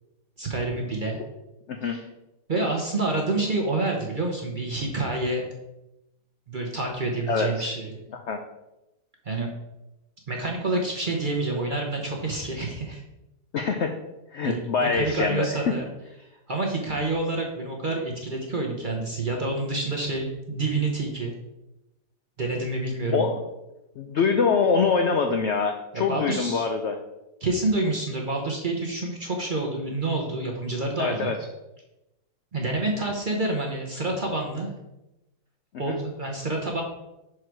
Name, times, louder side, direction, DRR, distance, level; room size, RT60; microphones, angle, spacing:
voice 1, 0.4-1.2 1.8-2.0 2.5-5.5 6.5-8.0 9.2-9.5 10.3-13.0 14.4-15.8 16.5-21.4 22.4-23.2 25.9-26.7 27.4-31.3 32.5-34.7 35.8-36.8, right 2 dB, 40° right, 1 dB, 0.8 m, -28 dB
voice 2, 1.7-2.0 7.3-7.7 8.3-8.4 13.5-14.0 14.3-15.8 23.1-23.4 24.0-27.0 31.0-31.4 35.9-36.0, left 5 dB, 70° left, 5 dB, 0.6 m, -24 dB
6.1 x 4.7 x 4.6 m, 0.95 s
omnidirectional pair, 1.8 m